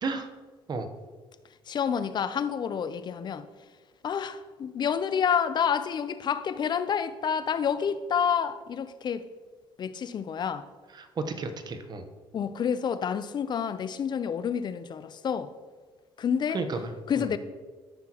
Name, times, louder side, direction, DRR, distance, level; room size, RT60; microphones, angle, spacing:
voice 1, 1.7-3.4 4.0-9.2 9.8-10.7 12.3-15.5 16.2-16.6 17.1-17.4, left 7 dB, 45° left, 13 dB, 0.6 m, -28 dB
voice 2, 10.9-12.1 16.5-16.9 17.2-17.3, right 3 dB, 40° right, 8 dB, 1.0 m, -32 dB
13.5 x 5.9 x 3.0 m, 1.4 s
supercardioid pair, 75°, 10 cm